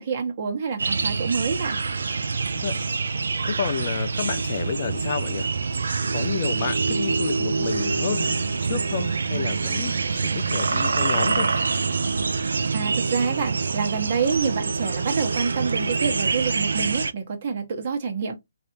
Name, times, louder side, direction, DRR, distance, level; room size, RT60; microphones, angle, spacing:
voice 1, 0.0-1.8 12.7-18.3, right 5 dB, 40° right, 1.3 m, -27 dB
sound 1, 0.8-17.1, right 4 dB, 75° right, 0.5 m, -25 dB
voice 2, 2.5-2.8 3.4-5.5 6.1-11.5, left 7 dB, 40° left, 0.4 m, -30 dB
3.3 x 2.7 x 2.8 m
hypercardioid pair, 155°, 0 cm